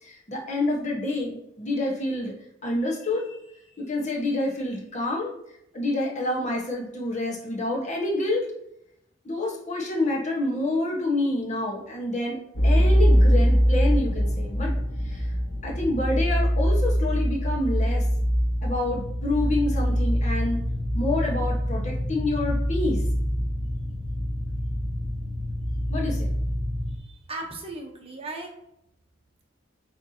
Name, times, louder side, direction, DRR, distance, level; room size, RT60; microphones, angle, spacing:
voice 1, 0.0-2.3 2.6-3.3 3.8-5.3 5.7-8.5 9.2-14.7 15.1-15.3 15.6-18.0 18.6-20.6 20.9-23.0 25.9-26.3, left 2 dB, 40° left, -2 dB, 1.4 m, -28 dB
sound 1, 12.5-27.0, equal, 90° left, 1.3 m, -24 dB
voice 2, 26.9-28.6, right 2 dB, 30° right, 0 dB, 1.1 m, -37 dB
9.6 x 3.4 x 2.9 m, 0.78 s
head